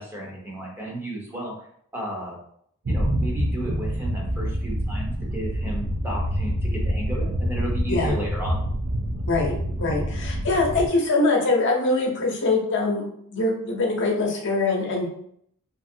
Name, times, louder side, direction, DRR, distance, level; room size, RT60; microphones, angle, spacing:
voice 1, 0.0-1.5 1.9-2.4 2.9-8.6, right 1 dB, 10° right, -2 dB, 0.7 m, -33 dB
sound 1, 2.9-10.9, equal, 60° right, 0.5 m, -26 dB
voice 2, 9.8-15.1, left 3 dB, 60° left, 0 dB, 0.7 m, -23 dB
2.9 x 2.6 x 2.7 m, 0.67 s
head